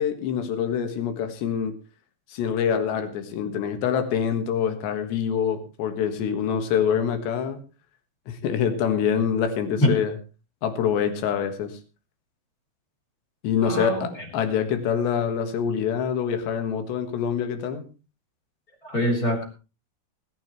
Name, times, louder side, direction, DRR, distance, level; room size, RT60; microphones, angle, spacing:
voice 1, 0.0-1.8 2.3-7.6 8.3-10.1 10.6-11.8 13.4-17.9, left 7 dB, 65° left, 3.4 m, -25 dB
voice 2, 13.6-14.3 18.8-19.4, equal, 20° left, 3.2 m, -24 dB
20.0 x 12.0 x 3.1 m
omnidirectional pair, 5.9 m